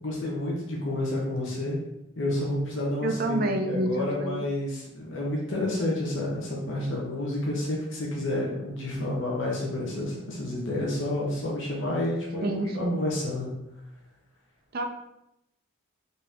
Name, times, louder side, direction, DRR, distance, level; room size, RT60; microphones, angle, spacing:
voice 1, 0.0-1.8 2.2-12.5 12.7-13.5, left 1 dB, 60° left, -3 dB, 0.9 m, -30 dB
voice 2, 3.0-4.4 12.4-13.0 14.7-14.8, right 2 dB, 45° right, 4 dB, 0.5 m, -28 dB
4.0 x 2.8 x 3.5 m, 0.86 s
head